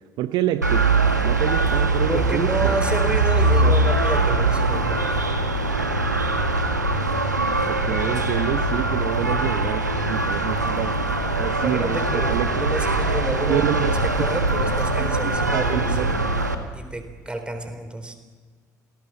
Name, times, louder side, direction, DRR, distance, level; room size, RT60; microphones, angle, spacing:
voice 1, 0.2-0.9 1.2-2.8 3.6-3.7 7.7-12.5 13.5-14.0 15.0-16.3, right 13 dB, 50° right, 12 dB, 0.8 m, -28 dB
sound 1, 0.6-16.6, right 2 dB, 85° right, 1.5 m, -22 dB
voice 2, 2.1-5.1 7.8-8.2 11.6-13.7 14.0-16.2 16.7-18.2, right 1 dB, 10° right, 8 dB, 3.8 m, -30 dB
27.5 x 18.5 x 7.6 m, 1.4 s
figure-of-eight pair, 60°, 9 cm